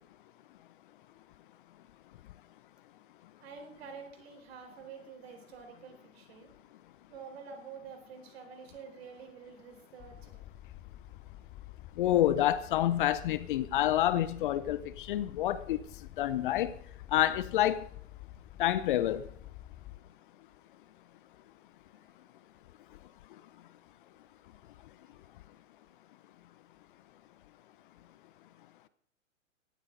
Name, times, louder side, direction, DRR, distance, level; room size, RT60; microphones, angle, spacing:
voice 1, 3.4-6.5 7.1-10.4 21.9-22.1, right 6 dB, 50° right, 4.4 m, -48 dB
sound 1, 10.0-20.0, left 14 dB, 20° left, 1.0 m, -49 dB
voice 2, 12.0-15.8 16.2-16.7 17.1-17.8 18.6-19.3, left 12 dB, 40° left, 0.8 m, -28 dB
17.5 x 13.0 x 4.0 m
figure-of-eight pair, 115°, 39 cm